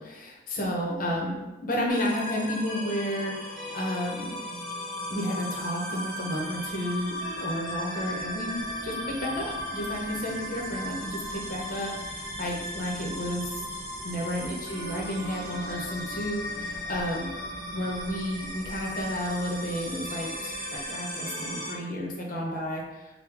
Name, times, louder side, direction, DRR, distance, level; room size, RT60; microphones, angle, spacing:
voice 1, 0.0-4.4 5.1-13.5 14.0-17.4 17.7-23.1, equal, 50° left, -1 dB, 0.8 m, -32 dB
sound 1, 1.9-21.7, equal, 5° left, 1.4 m, -36 dB
Cricket, 6.1-21.6, right 1 dB, 55° right, 0.9 m, -48 dB
4.7 x 2.2 x 3.4 m, 1.1 s
head